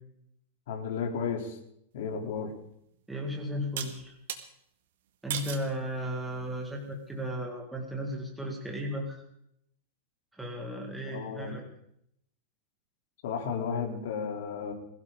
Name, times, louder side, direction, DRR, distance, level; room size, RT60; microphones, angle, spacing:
voice 1, 0.7-1.6 1.9-2.5 11.1-11.6 13.2-14.7, left 6 dB, 60° left, 2 dB, 3.3 m, -33 dB
sound 1, 2.4-2.5 3.8-4.4 5.3-5.7 6.3-6.8, right 10 dB, 65° right, 1.9 m, -36 dB
voice 2, 3.1-4.2 5.2-9.2 10.3-11.6, equal, 5° right, 0 dB, 1.9 m, -35 dB
21.5 x 16.0 x 3.8 m, 0.73 s
supercardioid pair, 175°, 0 cm